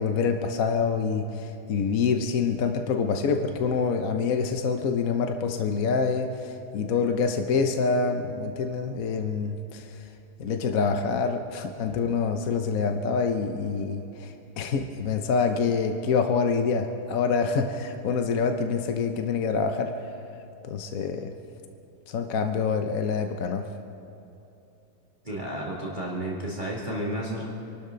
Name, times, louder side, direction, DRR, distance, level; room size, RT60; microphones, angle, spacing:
voice 1, 0.0-9.8 10.4-19.9 20.6-21.3 22.1-23.6, left 5 dB, 60° left, 6 dB, 0.9 m, -26 dB
voice 2, 25.2-27.5, right 1 dB, 20° right, -5 dB, 2.4 m, -32 dB
27.5 x 12.5 x 3.9 m, 2.8 s
omnidirectional pair, 2.4 m